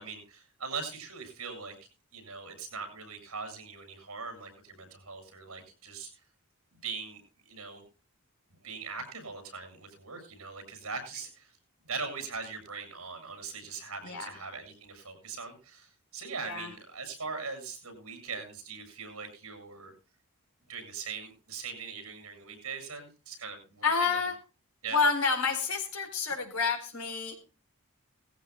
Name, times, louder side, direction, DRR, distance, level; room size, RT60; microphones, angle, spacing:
voice 1, 0.0-1.7 2.1-6.1 6.8-7.8 8.6-11.5 11.9-19.9 20.7-24.3 24.8-25.0, right 4 dB, 80° right, 7 dB, 7.5 m, -41 dB
voice 2, 23.8-24.3 24.9-27.3, left 4 dB, 85° left, 5 dB, 4.0 m, -28 dB
19.5 x 15.0 x 2.2 m, 0.31 s
head